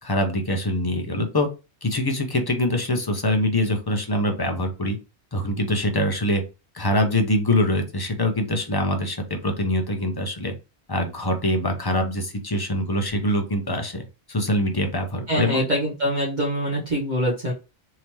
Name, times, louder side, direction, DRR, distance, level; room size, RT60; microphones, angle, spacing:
voice 1, 0.0-1.5 1.8-5.0 5.3-6.4 6.7-10.5 10.9-15.6, left 1 dB, 25° left, 4 dB, 0.6 m, -24 dB
voice 2, 15.3-17.5, equal, 45° right, -4 dB, 1.1 m, -24 dB
3.5 x 2.8 x 2.9 m, 0.29 s
omnidirectional pair, 1.1 m